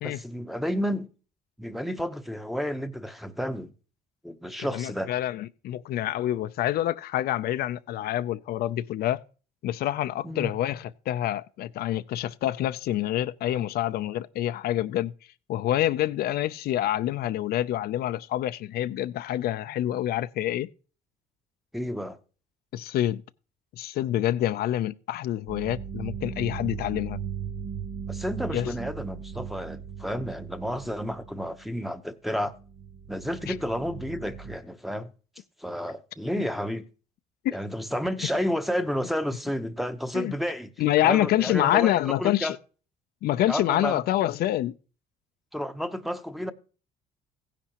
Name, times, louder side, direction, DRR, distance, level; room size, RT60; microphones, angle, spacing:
voice 1, 0.0-1.1 1.6-3.7 4.2-5.1 10.2-10.5 21.7-22.2 28.1-32.5 33.1-35.1 35.6-36.8 37.5-40.7 41.0-42.6 43.5-44.0 45.5-46.5, equal, ahead, 0.8 m, -31 dB
voice 2, 4.7-9.2 9.6-15.1 15.5-20.7 22.7-23.2 23.8-27.2 28.5-28.7 33.5-33.6 37.4-37.6 40.1-40.3 40.8-42.6 43.2-44.7, left 13 dB, 65° left, 0.5 m, -27 dB
sound 1, 25.5-31.8 32.4-34.6, right 7 dB, 45° right, 0.7 m, -38 dB
15.5 x 10.0 x 2.9 m
cardioid pair, 110°, 17 cm